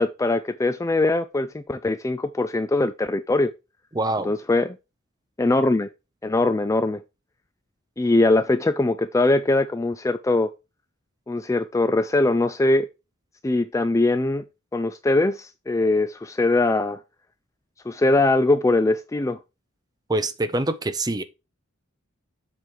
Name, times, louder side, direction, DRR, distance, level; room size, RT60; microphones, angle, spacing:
voice 1, 0.0-3.5 4.2-4.8 5.4-5.9 6.2-7.0 8.0-10.5 11.3-12.9 13.4-14.4 14.7-17.0 17.9-19.4, left 2 dB, 15° left, 0.3 m, -21 dB
voice 2, 3.9-4.3 20.1-21.2, right 2 dB, 20° right, 0.6 m, -25 dB
7.5 x 4.7 x 4.6 m
head